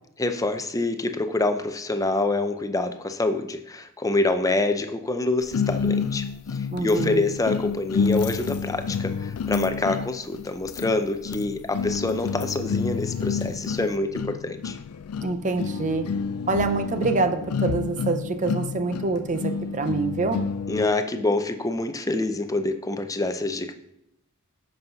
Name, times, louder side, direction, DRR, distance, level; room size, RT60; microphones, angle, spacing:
voice 1, 0.2-6.3 6.8-14.8 20.7-23.7, left 2 dB, 15° left, 8 dB, 0.6 m, -26 dB
Broken guitar, 5.5-21.0, left 5 dB, 75° left, 0.4 m, -29 dB
voice 2, 6.7-7.2 15.2-16.1 16.5-20.5, right 3 dB, 35° right, 8 dB, 0.6 m, -26 dB
8.0 x 5.6 x 5.6 m, 0.83 s
head